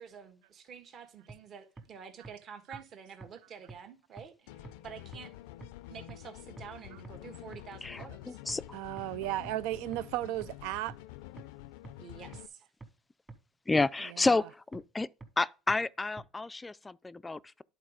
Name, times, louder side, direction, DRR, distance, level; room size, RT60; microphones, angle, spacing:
voice 1, 0.0-5.3 5.9-8.4 12.0-12.7, right 7 dB, 45° right, 1.4 m, -49 dB
sound 1, 1.3-1.4 1.8-1.9 2.2-2.3 2.7-2.8 3.2-3.3 3.7-3.8 4.2-4.3 4.6-4.7 5.1-5.2 5.6-5.7 6.1-6.2 6.6-6.7 7.0-7.1 7.5-7.6 8.0-8.1 8.5-8.6 9.0-9.1 9.4-9.5 9.9-10.0 10.4-10.5 10.9-11.0 11.4-11.5 11.8-11.9 12.3-12.4 12.8-12.9 13.3-13.4 13.8-13.9 14.2-14.3 14.7-14.8 15.2-15.3 15.7-15.8 16.2-16.3, right 3 dB, 20° right, 1.4 m, -45 dB
sound 2, 4.5-12.5, left 15 dB, 85° left, 0.4 m, -48 dB
voice 2, 7.8-8.6 13.7-14.5 14.7-15.1 15.4-17.6, left 3 dB, 15° left, 0.3 m, -30 dB
voice 3, 8.7-11.0, right 16 dB, 80° right, 0.3 m, -34 dB
11.0 x 4.0 x 5.0 m
supercardioid pair, 110°, 0 cm